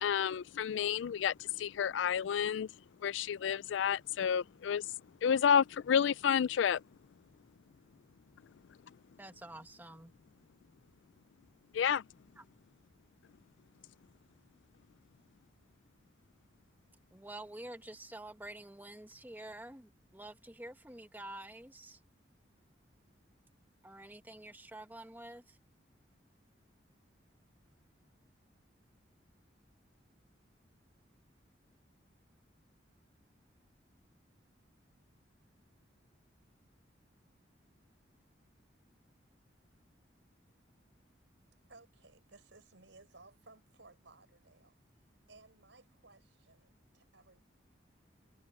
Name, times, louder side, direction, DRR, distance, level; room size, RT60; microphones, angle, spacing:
voice 1, 0.0-2.7 3.0-4.9 5.2-6.8 8.9-9.0 11.7-12.0, left 8 dB, 85° left, 0.4 m, -30 dB
voice 2, 9.2-10.1 12.4-12.5 17.1-22.0 23.8-25.6, right 1 dB, 10° right, 1.5 m, -48 dB
voice 3, 41.7-44.8 45.3-47.4, right 3 dB, 85° right, 4.3 m, -60 dB
head